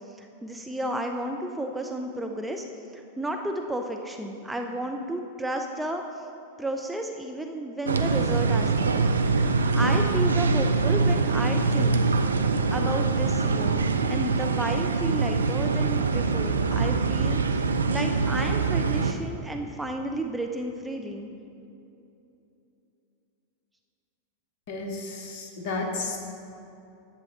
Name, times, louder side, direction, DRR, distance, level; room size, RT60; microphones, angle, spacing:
voice 1, 0.1-2.6 2.9-6.3 6.6-9.0 9.3-12.0 12.7-17.4 17.7-21.3, right 1 dB, 5° right, 2 dB, 0.5 m, -32 dB
sound 1, 7.9-19.1, right 4 dB, 75° right, 0.4 m, -24 dB
voice 2, 24.7-26.2, left 3 dB, 45° left, 2 dB, 1.2 m, -32 dB
11.0 x 7.5 x 3.2 m, 2.8 s
figure-of-eight pair, 90°, 0 cm